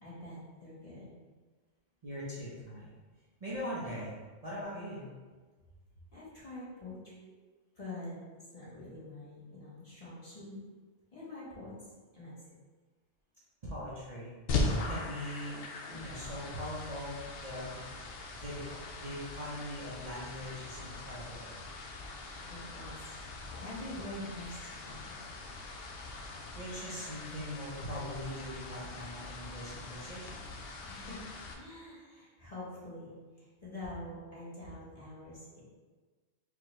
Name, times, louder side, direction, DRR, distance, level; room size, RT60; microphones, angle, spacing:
voice 1, 0.0-1.2 6.1-7.3 7.7-8.2 8.5-10.6 11.1-11.7 12.1-12.5 22.5-25.1 30.9-31.2 31.5-35.6, left 1 dB, 30° left, -8 dB, 1.1 m, -46 dB
voice 2, 2.0-2.9 3.4-4.2 4.4-5.1 13.6-14.3 14.8-15.6 15.9-17.1 17.4-17.8 18.3-21.5 26.5-30.4, equal, 35° right, -8 dB, 0.8 m, -41 dB
sound 1, 14.5-31.5, left 3 dB, 65° left, 0.7 m, -40 dB
4.9 x 2.3 x 3.1 m, 1.4 s
omnidirectional pair, 1.2 m